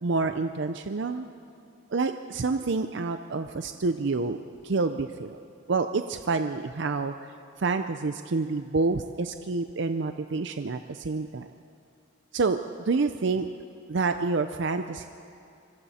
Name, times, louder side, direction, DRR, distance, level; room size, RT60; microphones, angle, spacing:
voice 1, 0.0-1.2 1.9-4.4 4.6-5.4 5.7-7.3 7.6-11.5 12.3-12.6 12.9-13.5 13.9-15.1, right 3 dB, 60° right, 8 dB, 0.5 m, -28 dB
25.5 x 24.0 x 4.3 m, 2.6 s
head